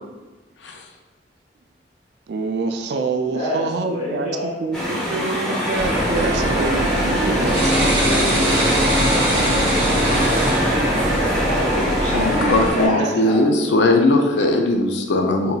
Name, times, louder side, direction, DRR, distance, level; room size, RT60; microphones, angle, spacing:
voice 1, 2.3-7.9 13.0-13.1, right 3 dB, 65° right, 6 dB, 0.3 m, -26 dB
voice 2, 3.3-5.7 6.3-6.6 7.6-13.7, equal, 35° left, -5 dB, 1.1 m, -29 dB
sound 1, 4.7-12.9, equal, 5° left, 1.0 m, -25 dB
sound 2, 5.7-12.7, right 1 dB, 30° right, 1.2 m, -21 dB
voice 3, 12.1-15.5, left 2 dB, 75° left, 3 dB, 0.4 m, -19 dB
4.0 x 3.9 x 2.3 m, 1.2 s
head